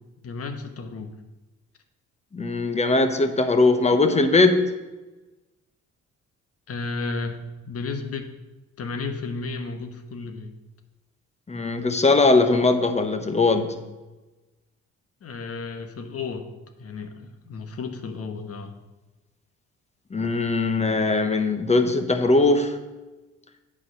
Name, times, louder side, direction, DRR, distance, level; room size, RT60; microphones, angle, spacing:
voice 1, 0.2-1.1 6.7-8.3 8.8-10.5 15.2-16.5 16.8-18.7, left 4 dB, 50° left, 7 dB, 1.1 m, -33 dB
voice 2, 2.3-4.7 11.5-13.8 20.1-22.8, left 3 dB, 20° left, 8 dB, 0.9 m, -20 dB
8.7 x 5.0 x 6.3 m, 1.1 s
cardioid pair, 90°, 30 cm